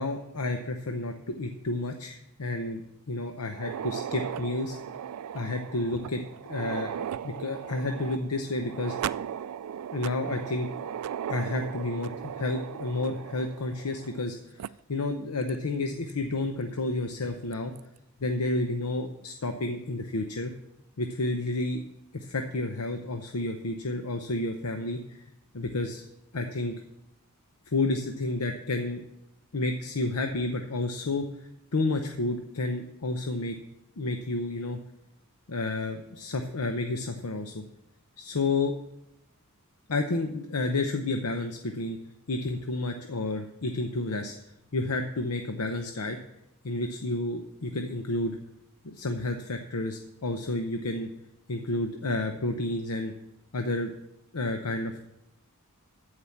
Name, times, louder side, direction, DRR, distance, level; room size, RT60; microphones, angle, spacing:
voice 1, 0.0-2.8 3.1-4.8 5.3-9.1 9.9-10.7 11.3-14.6 14.9-17.7 18.2-20.5 21.0-21.8 22.1-25.2 25.5-26.1 26.3-26.8 27.7-29.0 29.5-33.6 34.0-34.8 35.5-37.6 38.2-38.7 39.9-42.0 42.3-44.4 44.7-46.2 46.6-48.4 48.8-51.1 51.5-53.1 53.5-53.9 54.3-55.0, left 2 dB, 90° left, 5 dB, 0.8 m, -30 dB
sound 1, 3.5-14.2 14.6-14.7 15.5-15.6 16.1-16.2 17.5-17.8, right 9 dB, 90° right, 0.3 m, -37 dB
14.0 x 4.9 x 7.2 m, 0.84 s
head